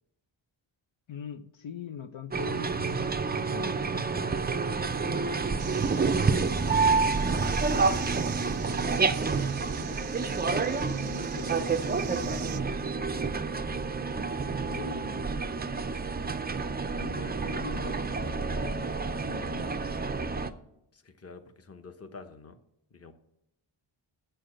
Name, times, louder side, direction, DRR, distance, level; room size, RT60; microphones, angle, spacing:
voice 1, 1.1-3.0 3.5-9.0 9.6-12.9 14.5-15.6 17.0-19.8, left 8 dB, 70° left, 9 dB, 0.7 m, -44 dB
sound 1, 2.3-20.5, right 4 dB, 20° right, 0.4 m, -29 dB
sound 2, 5.6-12.6, right 12 dB, 75° right, 0.6 m, -45 dB
voice 2, 7.7-8.1 20.9-22.6 22.9-23.1, left 4 dB, 30° left, 9 dB, 0.9 m, -48 dB
7.6 x 6.8 x 7.6 m, 0.81 s
wide cardioid pair, 110°, 49 cm